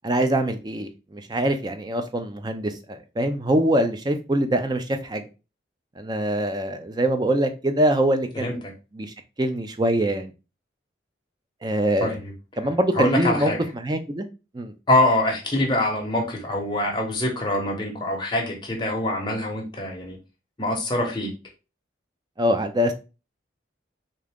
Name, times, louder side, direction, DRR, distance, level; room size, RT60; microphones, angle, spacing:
voice 1, 0.0-5.3 6.0-8.6 8.9-10.3 11.6-12.2 12.6-14.3 14.5-14.7 22.4-22.9, right 1 dB, 20° right, 0.4 m, -24 dB
voice 2, 12.0-12.3 13.0-13.6 14.9-20.2 20.6-21.3, left 1 dB, 25° left, 1.0 m, -24 dB
3.7 x 2.8 x 3.5 m
head